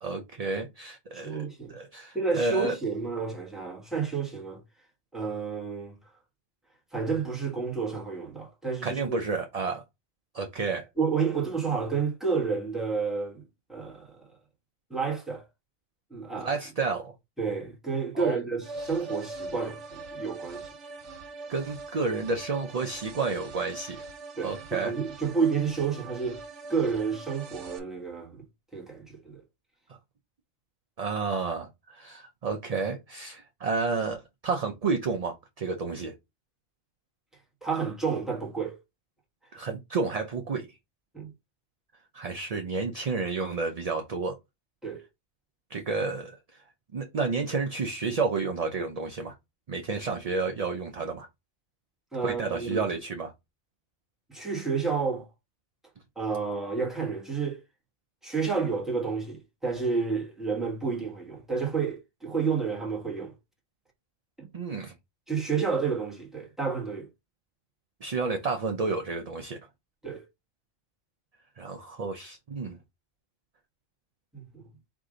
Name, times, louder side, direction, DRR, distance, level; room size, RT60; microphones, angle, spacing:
voice 1, 0.0-1.4 1.7-2.7 8.8-9.8 10.3-10.9 16.4-17.1 18.2-18.4 21.5-24.0 24.4-24.9 31.0-36.1 39.5-40.7 42.1-44.4 45.7-46.4 46.9-49.3 49.7-51.3 52.2-53.3 64.5-64.9 68.0-69.6 71.6-72.8, right 4 dB, 45° right, 0.5 m, -30 dB
voice 2, 1.1-1.8 2.1-4.6 5.1-6.0 6.9-9.2 11.0-13.4 13.7-14.3 14.9-15.5 16.1-16.6 17.4-20.7 24.4-26.4 26.7-28.4 28.7-29.4 37.6-38.8 41.1-41.3 44.8-45.0 52.1-52.9 54.3-55.3 56.2-57.6 58.2-63.3 64.4-64.5 65.3-67.1 70.0-70.3 74.3-74.7, right 5 dB, ahead, 1.2 m, -30 dB
sound 1, 18.6-27.8, right 3 dB, 90° right, 1.1 m, -42 dB
4.8 x 2.6 x 3.7 m
omnidirectional pair, 1.2 m